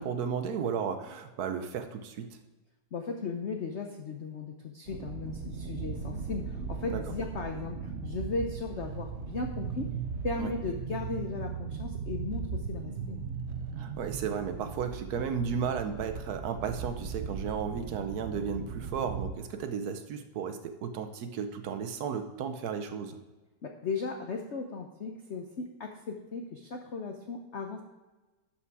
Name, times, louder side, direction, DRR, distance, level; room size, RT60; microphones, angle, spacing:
voice 1, 0.0-2.4 6.9-7.0 10.4-10.5 13.8-23.2, right 6 dB, 65° right, 8 dB, 1.0 m, -34 dB
voice 2, 2.9-9.9 10.2-13.2 23.6-27.8, left 4 dB, 85° left, 3 dB, 0.6 m, -36 dB
sound 1, 4.9-19.3, right 6 dB, 80° right, 0.6 m, -38 dB
11.5 x 5.9 x 4.7 m, 1.2 s
omnidirectional pair, 2.2 m